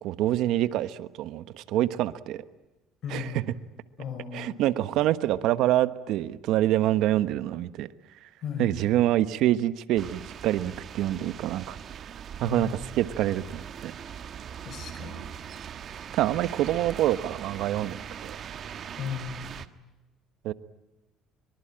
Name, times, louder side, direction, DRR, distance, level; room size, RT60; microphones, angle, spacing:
voice 1, 0.0-2.4 3.1-3.4 4.3-7.9 8.2-8.3 8.6-11.8 12.4-13.9 16.1-18.4 20.4-20.5, right 13 dB, 70° right, 14 dB, 1.2 m, -26 dB
voice 2, 3.0-3.4 4.0-4.6 8.4-8.7 12.4-12.7 14.6-15.3 19.0-19.8, left 7 dB, 55° left, 8 dB, 5.4 m, -36 dB
sound 1, 10.0-19.7, right 8 dB, 45° right, 1.4 m, -41 dB
24.0 x 24.0 x 8.9 m, 1.1 s
cardioid pair, 115°, 0 cm